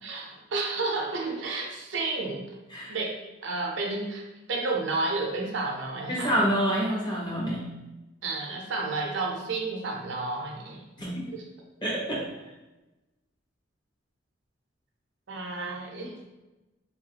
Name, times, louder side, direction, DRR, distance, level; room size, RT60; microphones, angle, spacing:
voice 1, 0.0-2.5 2.9-6.4 8.2-10.8 11.3-11.4 15.3-16.2, right 3 dB, 65° right, 0 dB, 0.5 m, -31 dB
voice 2, 6.1-7.6 11.0-11.1 11.8-12.2, equal, 25° left, -5 dB, 0.9 m, -27 dB
3.4 x 2.4 x 2.8 m, 1.1 s
head